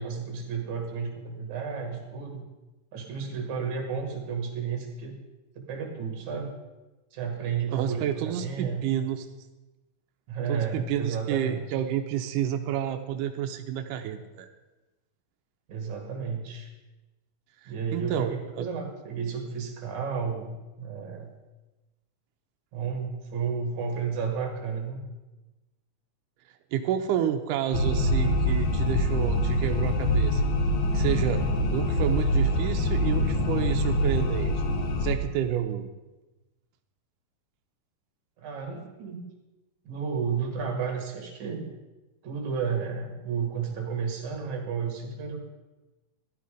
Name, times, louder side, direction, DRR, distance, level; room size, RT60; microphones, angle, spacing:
voice 1, 0.0-2.4 2.9-5.1 5.6-6.5 7.1-8.8 10.3-11.6 15.7-16.7 17.6-21.3 22.7-25.0 38.4-39.2 39.8-41.7 42.2-45.4, right 6 dB, 55° right, 2 dB, 3.1 m, -32 dB
voice 2, 7.7-9.3 10.5-14.5 17.6-18.7 26.7-30.5 30.9-31.4 31.7-34.7 35.0-35.9, right 10 dB, 85° right, 6 dB, 1.9 m, -29 dB
sound 1, 27.7-35.2, left 1 dB, 65° left, 2.0 m, -25 dB
13.0 x 11.0 x 4.9 m, 1.1 s
omnidirectional pair, 4.5 m